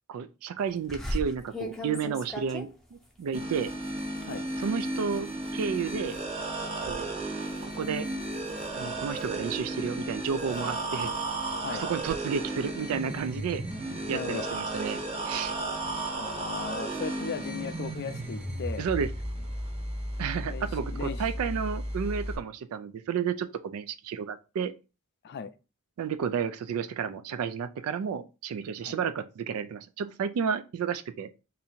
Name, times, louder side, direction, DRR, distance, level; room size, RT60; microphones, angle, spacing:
voice 1, 0.1-3.7 4.6-6.2 6.8-7.1 7.6-8.1 8.7-11.1 11.7-13.6 14.1-15.0 15.2-15.5 18.8-19.1 20.2-24.7 26.0-31.3, right 6 dB, 75° right, 0.3 m, -32 dB
sound 1, 0.9-6.3 6.6-7.0 7.4-9.4 10.0-12.2, left 1 dB, ahead, 0.6 m, -40 dB
sound 2, 3.3-22.4, right 2 dB, 30° right, 0.9 m, -34 dB
voice 2, 14.1-14.6 16.2-18.9 20.5-21.2 25.2-25.5 28.8-29.0, left 6 dB, 50° left, 0.4 m, -37 dB
2.7 x 2.7 x 4.2 m
head